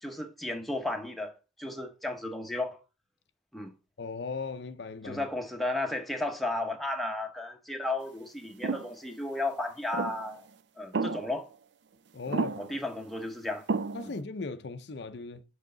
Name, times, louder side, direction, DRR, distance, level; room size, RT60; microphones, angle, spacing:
voice 1, 0.0-1.3 1.6-2.8 3.5-3.7 5.0-10.4 10.8-11.5 12.3-13.7 14.0-14.1, left 2 dB, ahead, 0.8 m, -34 dB
voice 2, 4.0-5.2 12.1-12.6 13.9-15.4, left 4 dB, 60° left, 0.5 m, -38 dB
sound 1, 8.6-8.9 9.9-10.3 10.9-11.5 12.3-12.8 13.7-14.2, right 4 dB, 65° right, 0.5 m, -32 dB
6.2 x 5.7 x 3.8 m
head